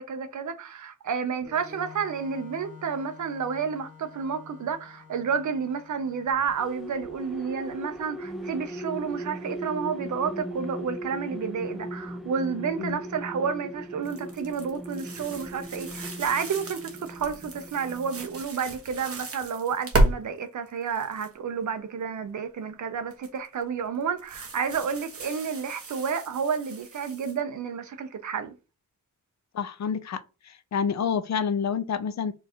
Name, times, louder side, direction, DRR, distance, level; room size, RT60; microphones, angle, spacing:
voice 1, 0.0-28.5, right 6 dB, 65° right, 0.7 m, -30 dB
Organ, 1.4-8.9, left 5 dB, 25° right, 1.3 m, -50 dB
sound 1, 6.4-18.4, right 1 dB, ahead, 0.4 m, -38 dB
sound 2, 14.0-20.1 20.7-21.3 23.1-23.5 24.2-27.4, right 1 dB, 45° right, 1.1 m, -32 dB
voice 2, 29.5-32.3, left 6 dB, 55° left, 0.5 m, -28 dB
4.7 x 2.5 x 4.3 m
wide cardioid pair, 180°, 32 cm